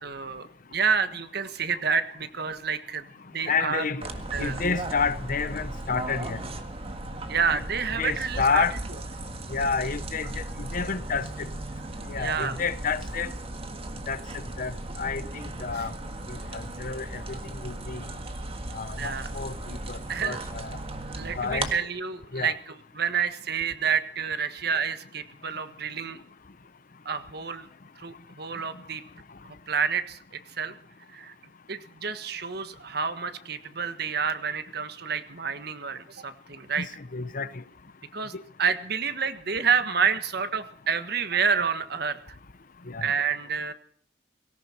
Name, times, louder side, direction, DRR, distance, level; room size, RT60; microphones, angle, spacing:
voice 1, 0.0-3.1 3.3-3.8 4.3-4.6 7.3-8.7 12.2-12.6 15.7-15.9 19.0-19.3 20.1-20.4 21.1-26.2 27.0-27.7 28.0-29.0 29.4-30.7 31.1-31.3 31.7-36.9 38.1-38.3 38.6-42.4 43.0-43.7, right 6 dB, 60° right, 1.5 m, -29 dB
voice 2, 3.5-4.0 4.4-6.4 7.5-7.6 8.0-8.7 9.5-11.2 12.1-13.3 14.1-14.7 15.0-15.2 15.6-15.9 16.3-17.4 17.6-18.0 18.7-20.7 21.4-21.7 22.3-22.5 36.8-36.9 37.1-37.5 42.9-43.1, left 5 dB, 50° left, 0.9 m, -29 dB
sound 1, 4.0-21.7, right 2 dB, 35° right, 1.7 m, -36 dB
18.5 x 17.5 x 4.4 m
head